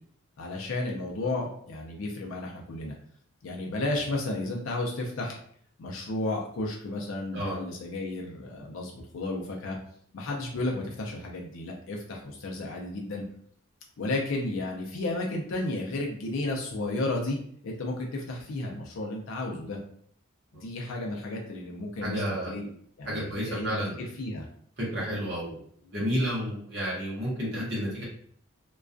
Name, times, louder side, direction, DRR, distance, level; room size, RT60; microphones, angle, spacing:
voice 1, 0.4-2.9 3.4-5.4 5.8-9.8 10.1-13.2 14.0-17.4 17.6-19.8 20.5-22.7 23.0-23.7 24.0-24.5, left 2 dB, 70° left, 0 dB, 0.4 m, -33 dB
voice 2, 22.0-22.5 23.1-24.0 24.9-25.6 25.9-28.0, equal, 50° right, -6 dB, 0.8 m, -31 dB
2.3 x 2.2 x 2.4 m, 0.63 s
head